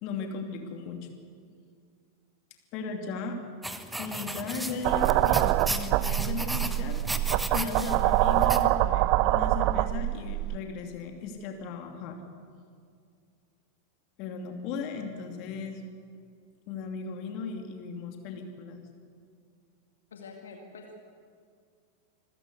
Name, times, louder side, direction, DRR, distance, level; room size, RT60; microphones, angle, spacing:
voice 1, 0.0-1.1 2.7-3.4 4.0-7.0 7.5-12.2 14.2-15.9 16.7-18.8, left 5 dB, 40° left, 4 dB, 2.7 m, -36 dB
sound 1, 3.6-8.6, right 1 dB, 5° right, 1.1 m, -35 dB
sound 2, 4.8-10.6, right 16 dB, 45° right, 0.5 m, -25 dB
voice 2, 20.1-21.1, left 3 dB, 65° left, 3 dB, 2.1 m, -46 dB
26.5 x 15.0 x 8.1 m, 2.2 s
figure-of-eight pair, 90°, 0 cm